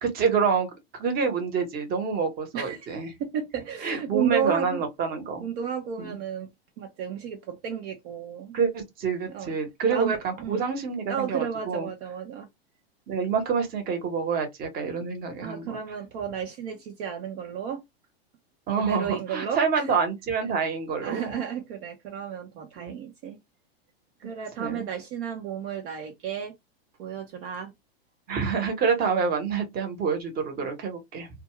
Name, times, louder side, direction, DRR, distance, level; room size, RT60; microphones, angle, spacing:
voice 1, 0.0-3.1 3.8-5.5 6.0-6.2 8.5-11.9 13.1-15.8 18.7-21.4 22.8-23.0 24.6-24.9 28.3-31.3, right 5 dB, 30° right, 1.1 m, -27 dB
voice 2, 2.5-2.9 3.2-4.8 5.4-6.5 6.8-8.6 9.3-9.5 9.9-10.6 11.1-12.5 15.4-17.8 18.8-19.9 21.0-23.4 24.2-26.5 27.0-27.7, right 8 dB, 50° right, 0.8 m, -33 dB
2.5 x 2.4 x 3.1 m
hypercardioid pair, 125°, 31 cm